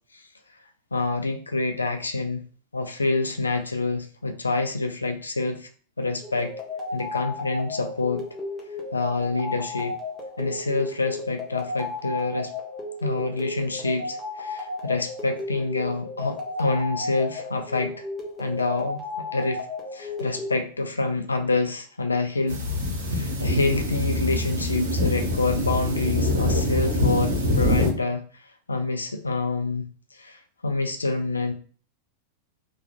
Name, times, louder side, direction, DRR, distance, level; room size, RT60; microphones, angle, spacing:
voice 1, 0.9-2.4 2.7-5.7 6.0-6.5 6.9-8.2 8.9-10.0 10.4-12.5 13.0-18.0 18.4-19.0 19.3-19.6 19.9-22.6 23.1-28.2 28.7-29.9 30.2-31.5, left 3 dB, 80° left, 6 dB, 0.3 m, -27 dB
sound 1, 6.2-20.6, left 3 dB, ahead, 1.0 m, -34 dB
sound 2, 22.5-27.9, left 1 dB, 60° right, 0.8 m, -24 dB
3.1 x 2.3 x 2.3 m, 0.41 s
figure-of-eight pair, 90°, 0 cm